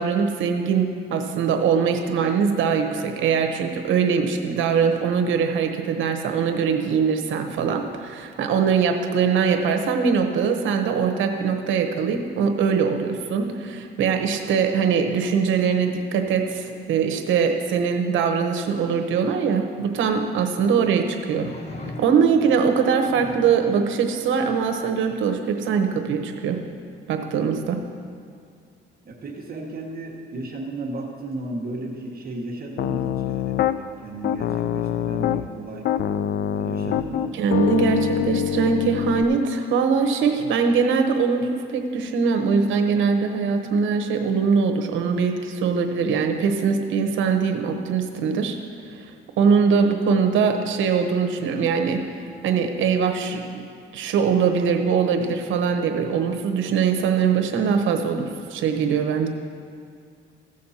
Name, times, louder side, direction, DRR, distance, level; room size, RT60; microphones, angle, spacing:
voice 1, 0.0-21.5 22.0-26.6 27.1-27.8 37.3-48.6 49.0-52.0 52.4-53.6 53.9-59.3, right 6 dB, 80° right, 5 dB, 1.0 m, -22 dB
sound 1, 21.3-22.5 23.1-23.8 25.7-25.8, left 2 dB, 35° left, 1.1 m, -39 dB
voice 2, 29.0-35.9 36.5-37.4, right 2 dB, 50° right, -1 dB, 1.4 m, -34 dB
Piano, 32.8-33.8 34.2-35.5 35.9-39.2, left 10 dB, 60° left, 0.4 m, -24 dB
15.5 x 6.5 x 4.3 m, 2.3 s
cardioid pair, 90°, 20 cm